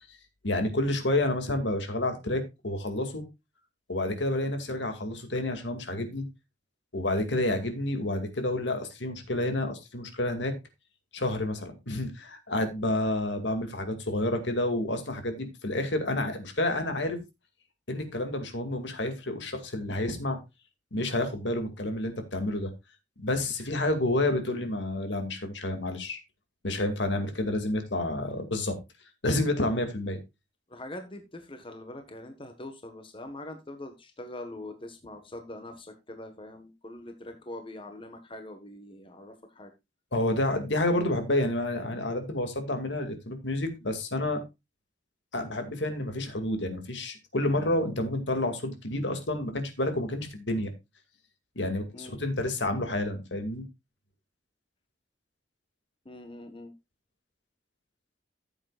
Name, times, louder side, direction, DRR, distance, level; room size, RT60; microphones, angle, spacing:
voice 1, 0.4-3.2 3.9-6.3 6.9-10.5 11.1-17.2 17.9-20.4 20.9-22.7 23.2-26.2 26.6-28.8 29.2-30.2 40.1-44.4 45.3-50.7 51.6-53.7, left 1 dB, 70° left, 7 dB, 2.3 m, -29 dB
voice 2, 30.7-39.7 51.9-52.2 56.0-56.7, left 1 dB, 30° left, 6 dB, 1.4 m, -43 dB
14.0 x 8.1 x 2.4 m, 0.23 s
head